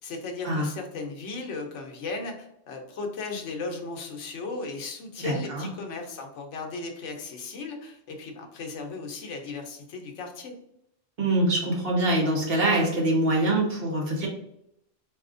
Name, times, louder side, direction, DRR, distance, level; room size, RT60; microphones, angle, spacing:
voice 1, 0.0-10.5, left 3 dB, 75° left, 3 dB, 1.0 m, -36 dB
voice 2, 5.2-5.7 11.2-14.3, right 1 dB, 55° right, -2 dB, 1.2 m, -24 dB
4.2 x 2.7 x 2.5 m, 0.76 s
omnidirectional pair, 1.2 m